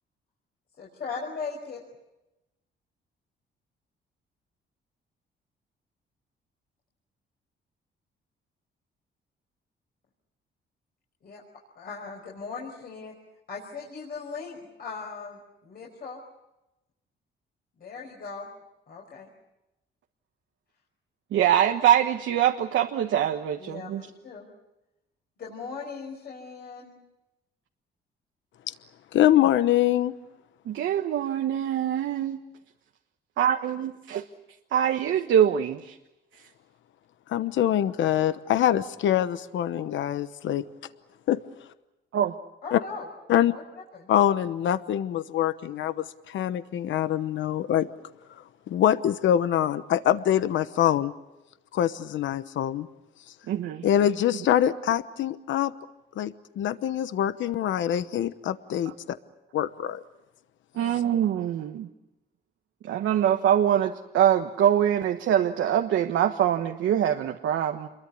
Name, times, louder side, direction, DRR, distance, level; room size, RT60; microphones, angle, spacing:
voice 1, 0.8-1.8 11.2-11.4 11.8-13.1 13.5-16.2 17.8-18.5 18.9-19.3 23.6-24.5 25.4-26.9 42.6-43.1 43.5-43.6 43.9-44.1 60.7-61.0, left 5 dB, 50° left, -2 dB, 5.4 m, -38 dB
voice 2, 21.3-24.1 30.7-32.4 33.4-34.2 34.7-36.0 42.1-42.4 53.5-53.9 60.8-61.9 62.8-67.9, right 10 dB, 80° right, 5 dB, 1.3 m, -24 dB
voice 3, 29.1-30.1 37.3-40.6 41.3-41.4 42.7-42.8 43.3-43.5 44.1-47.9 48.7-51.1 51.7-52.9 53.8-55.7 56.2-59.2 59.5-60.0, left 11 dB, 75° left, 13 dB, 1.0 m, -24 dB
28.0 x 22.5 x 8.5 m, 0.96 s
cardioid pair, 135°, 20 cm